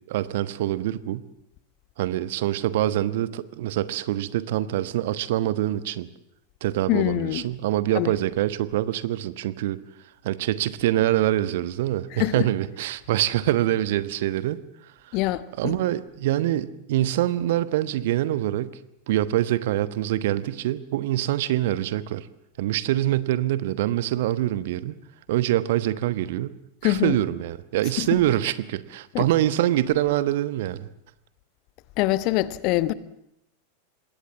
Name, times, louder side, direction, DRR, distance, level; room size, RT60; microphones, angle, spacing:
voice 1, 0.1-1.2 2.0-6.1 6.6-9.8 10.2-14.6 15.1-15.2 15.6-18.8 19.1-22.3 22.6-25.0 25.3-26.6 26.8-30.9, right 14 dB, 55° right, 1.1 m, -25 dB
voice 2, 6.9-7.4 7.9-8.1 12.1-12.3 15.1-15.8 26.8-27.2 28.0-28.1 29.1-29.3 32.0-32.9, left 16 dB, 40° left, 1.1 m, -24 dB
26.5 x 20.5 x 7.3 m
figure-of-eight pair, 90°, 0 cm